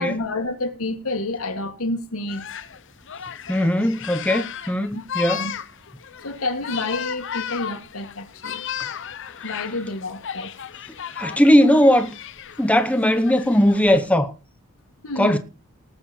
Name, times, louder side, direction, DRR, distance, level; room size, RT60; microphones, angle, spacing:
voice 1, 0.0-2.5 4.9-5.0 5.4-5.5 6.2-8.6 9.4-10.6 15.0-15.4, left 2 dB, 80° left, 2.1 m, -29 dB
sound 1, 2.3-14.1, left 8 dB, 60° left, 0.9 m, -35 dB
voice 2, 3.5-5.5 11.1-12.2 12.6-14.3 15.2-15.4, equal, 5° left, 0.9 m, -18 dB
19.0 x 6.9 x 4.4 m
head